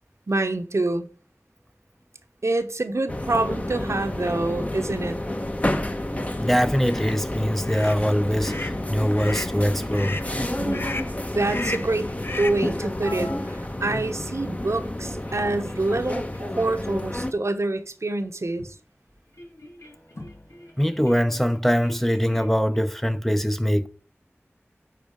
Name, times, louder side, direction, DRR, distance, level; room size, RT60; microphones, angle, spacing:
voice 1, 0.3-1.1 2.4-5.2 10.6-10.9 11.3-18.7, right 2 dB, 80° right, 1.0 m, -26 dB
sound 1, 3.1-17.3, left 1 dB, 30° left, 1.0 m, -30 dB
voice 2, 6.4-10.2 20.8-23.9, equal, 5° left, 0.6 m, -23 dB
sound 2, 6.9-7.2 7.6-8.0 8.4-8.8 9.2-9.6 9.9-10.3 10.7-11.1 11.5-11.9 12.2-12.6, left 2 dB, 50° left, 0.7 m, -34 dB
sound 3, 9.8-16.1 16.3-16.7 17.7-17.8 18.1-18.3 18.6-18.8 19.2-23.0, left 1 dB, 90° left, 2.3 m, -44 dB
10.5 x 4.0 x 6.1 m
wide cardioid pair, 40°, 5 cm